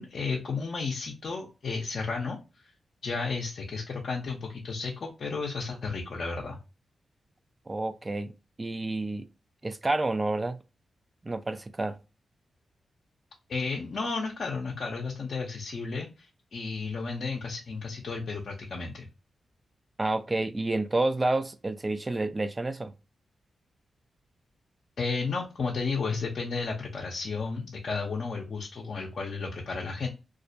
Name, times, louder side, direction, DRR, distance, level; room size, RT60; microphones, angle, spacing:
voice 1, 0.0-2.7 3.0-6.6 13.5-19.1 25.0-30.1, left 4 dB, 65° left, 0.5 m, -33 dB
voice 2, 7.7-8.3 8.6-9.3 9.6-10.6 11.2-12.0 20.0-22.9, right 2 dB, 30° right, 0.3 m, -29 dB
2.4 x 2.0 x 2.6 m
supercardioid pair, 45°, 0 cm